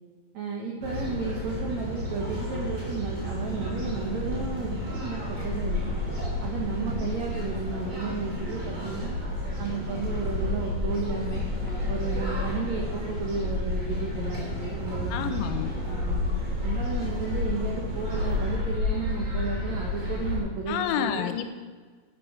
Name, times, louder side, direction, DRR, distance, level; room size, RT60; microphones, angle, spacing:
voice 1, 0.3-5.8 6.4-9.2 9.6-11.4 11.9-15.3 15.8-16.2 16.6-21.3, right 4 dB, 80° right, -1 dB, 1.6 m, -33 dB
sound 1, 0.8-20.4, left 1 dB, 30° right, 3.4 m, -30 dB
voice 2, 15.1-15.7 20.7-21.5, left 9 dB, 85° left, 8 dB, 3.1 m, -29 dB
12.0 x 9.9 x 5.0 m, 1.5 s
omnidirectional pair, 5.2 m